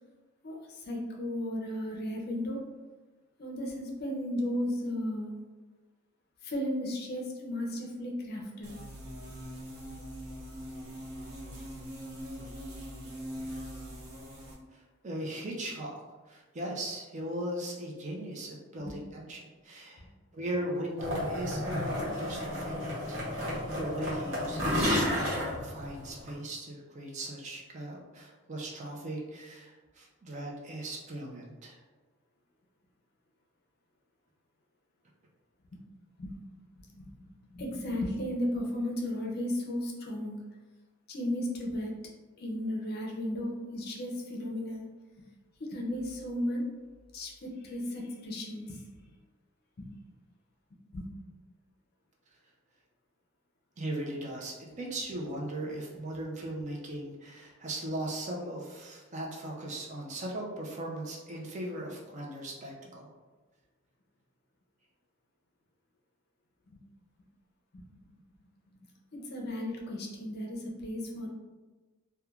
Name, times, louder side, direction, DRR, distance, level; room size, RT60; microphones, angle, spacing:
voice 1, 0.4-2.6 3.4-5.3 6.4-8.7 18.8-18.9 20.0-20.1 23.2-23.3 35.7-35.8 36.2-36.4 36.7-40.4 41.1-41.9 42.4-44.9 45.6-46.6 47.1-48.8 49.8-49.9 50.9-51.1 66.7-66.8 67.7-67.8 69.1-71.3, left 1 dB, 50° left, 0 dB, 0.5 m, -35 dB
sound 1, 8.6-14.5, equal, 90° right, 0.8 m, -42 dB
voice 2, 14.7-20.0 20.3-31.8 53.8-63.1, right 1 dB, 35° right, -1 dB, 0.4 m, -38 dB
sound 2, 21.0-26.3, left 1 dB, 65° right, 0.9 m, -32 dB
3.1 x 2.2 x 2.3 m, 1.3 s
head